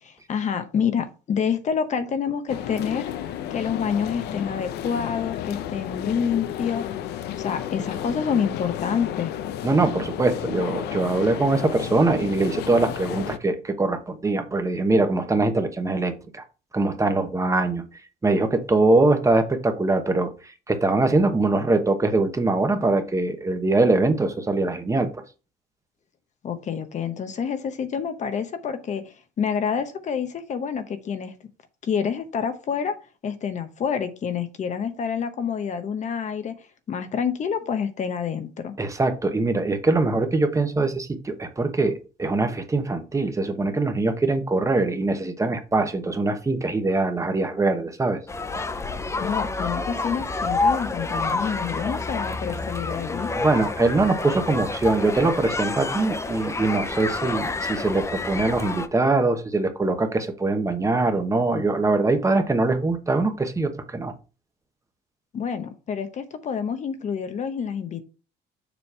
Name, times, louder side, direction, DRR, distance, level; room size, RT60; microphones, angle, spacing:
voice 1, 0.0-3.1 3.5-6.9 7.4-9.3 26.4-31.3 31.8-33.0 33.2-38.7 49.2-53.3 65.3-68.0, left 7 dB, 45° left, 9 dB, 0.9 m, -28 dB
sound 1, 2.5-13.4, left 11 dB, 80° left, 0.6 m, -32 dB
voice 2, 9.6-16.4 16.7-17.8 18.2-25.1 38.8-48.2 53.4-64.1, right 2 dB, 20° right, 7 dB, 1.0 m, -22 dB
sound 2, 48.3-58.9, left 3 dB, 15° left, 0.6 m, -28 dB
7.0 x 3.1 x 5.5 m, 0.33 s
cardioid pair, 110°, 17 cm